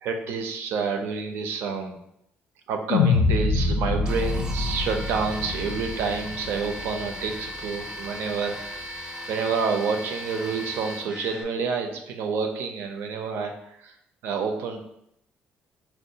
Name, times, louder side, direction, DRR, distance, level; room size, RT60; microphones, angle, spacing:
voice 1, 0.0-2.0 2.7-13.9 14.2-14.8, right 5 dB, 80° right, 5 dB, 0.5 m, -29 dB
sound 1, 2.9-7.2, left 4 dB, 70° left, 0.3 m, -25 dB
sound 2, 4.1-11.4, equal, 20° right, 0.4 m, -37 dB
4.6 x 2.2 x 2.7 m, 0.77 s
cardioid pair, 155°, 4 cm